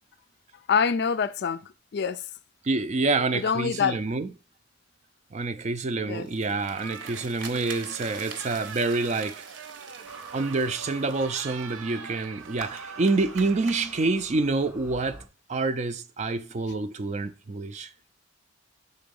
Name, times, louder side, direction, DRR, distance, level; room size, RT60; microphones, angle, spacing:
voice 1, 0.7-1.6 1.9-2.2 3.3-4.0 6.1-6.3, left 6 dB, 60° left, 0.4 m, -25 dB
voice 2, 2.6-4.3 5.3-9.4 10.3-15.2 15.5-17.9, right 3 dB, 35° right, 0.4 m, -27 dB
sound 1, 6.2-12.3, right 5 dB, 65° right, 0.9 m, -45 dB
sound 2, 6.7-14.0, right 6 dB, 85° right, 0.5 m, -42 dB
sound 3, 10.1-15.3, right 2 dB, 5° right, 0.7 m, -47 dB
5.4 x 3.9 x 5.2 m
head